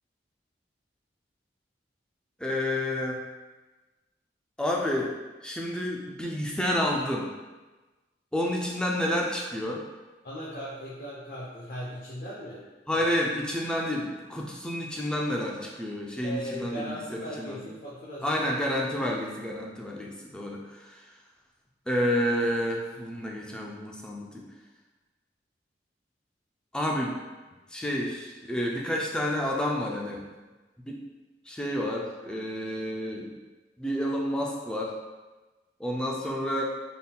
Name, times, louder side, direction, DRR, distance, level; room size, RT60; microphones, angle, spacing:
voice 1, 2.4-3.2 4.6-5.1 5.4-7.3 8.3-9.8 12.9-17.6 18.2-21.1 21.9-24.5 26.7-27.2 27.7-30.2 30.9-31.0 31.5-33.3 33.8-35.0 35.8-36.6, equal, 5° left, -2 dB, 0.3 m, -29 dB
voice 2, 10.2-13.0 16.2-18.4, equal, 45° left, -7 dB, 0.6 m, -38 dB
3.9 x 3.6 x 2.2 m, 1.2 s
head